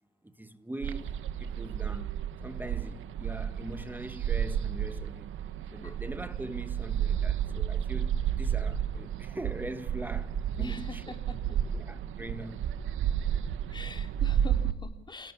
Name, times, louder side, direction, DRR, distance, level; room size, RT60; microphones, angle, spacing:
voice 1, 0.2-2.1 2.4-5.3 5.7-11.0 11.7-12.7, right 1 dB, 10° right, 2.0 m, -42 dB
sound 1, 0.8-14.7, right 9 dB, 80° right, 1.7 m, -32 dB
voice 2, 10.6-11.6 13.7-15.3, left 3 dB, 20° left, 3.9 m, -44 dB
30.0 x 17.0 x 8.5 m
cardioid pair, 90°, 20 cm